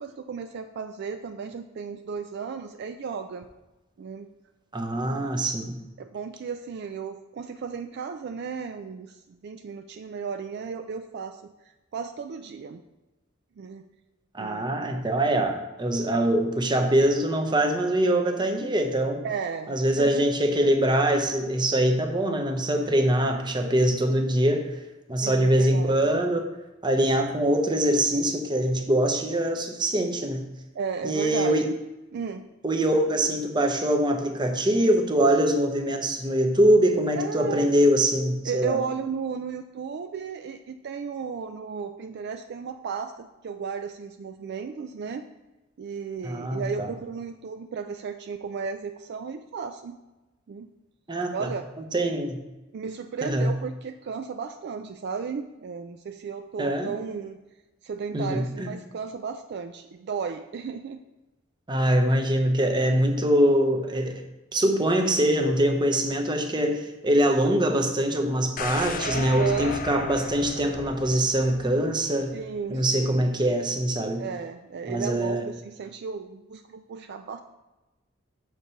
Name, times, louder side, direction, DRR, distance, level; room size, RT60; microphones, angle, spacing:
voice 1, 0.0-3.5 4.0-4.3 5.1-5.4 6.0-11.5 11.9-12.8 13.6-13.9 14.4-14.7 19.2-20.3 25.2-26.0 30.7-31.6 32.1-32.4 37.2-37.7 38.4-45.3 45.8-50.0 50.5-50.7 51.3-51.7 52.7-57.4 57.8-61.0 69.0-69.8 72.3-73.2 74.2-77.4, right 6 dB, 55° right, 7 dB, 0.4 m, -34 dB
voice 2, 4.7-5.8 14.3-19.2 19.7-24.7 25.1-26.5 26.8-30.5 31.0-31.7 32.6-38.8 46.2-46.9 51.1-51.5 51.9-52.4 53.2-53.6 56.6-56.9 58.1-58.7 61.7-64.2 64.5-72.4 72.7-74.2 74.9-75.5, right 1 dB, 25° right, 4 dB, 0.8 m, -23 dB
sound 1, 68.6-72.5 72.9-73.0, left 6 dB, 45° left, 0.4 m, -36 dB
6.6 x 4.7 x 5.6 m, 1.1 s
head